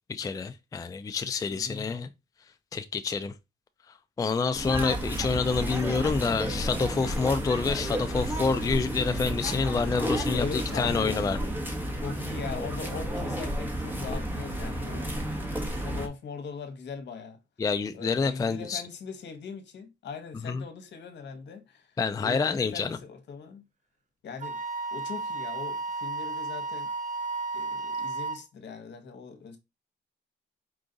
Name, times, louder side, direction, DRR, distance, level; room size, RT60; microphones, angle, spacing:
voice 1, 0.1-2.1 2.7-3.3 3.9-11.4 17.6-18.8 20.5-20.6 22.0-23.0, left 4 dB, 20° left, 0.4 m, -28 dB
voice 2, 1.5-1.9 10.0-11.3 12.0-15.1 15.7-17.4 17.9-23.6 24.2-24.6 24.9-26.9 27.5-29.6, left 5 dB, 60° left, 1.1 m, -40 dB
sound 1, 4.5-16.1, equal, 10° right, 1.1 m, -32 dB
Wind instrument woodwind instrument, 24.4-28.4, right 3 dB, 40° right, 0.6 m, -33 dB
4.7 x 2.5 x 3.8 m
cardioid pair, 90°, 20 cm